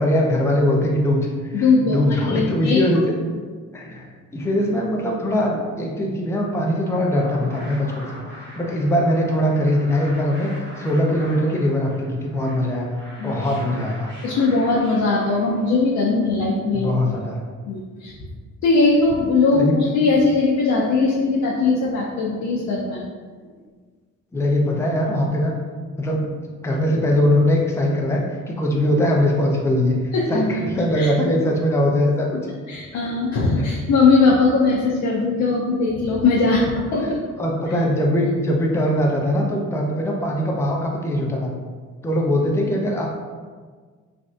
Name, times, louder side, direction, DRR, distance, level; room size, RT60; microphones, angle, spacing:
voice 1, 0.0-3.1 3.7-8.1 8.4-10.5 10.8-12.8 13.2-14.1 16.7-17.4 19.5-19.8 24.3-25.5 26.0-26.3 26.6-32.4 33.6-33.7 37.0-37.1 37.4-41.5 42.0-43.1, left 1 dB, 10° left, -1 dB, 0.4 m, -21 dB
voice 2, 1.5-2.9 13.2-13.3 14.2-16.9 17.7-18.1 18.6-23.0 30.1-30.4 30.9-31.1 32.7-37.2, left 3 dB, 65° left, -4 dB, 0.6 m, -19 dB
sound 1, 6.6-15.9, equal, 40° right, 1.0 m, -42 dB
3.3 x 2.5 x 2.4 m, 1.5 s
cardioid pair, 90°, 30 cm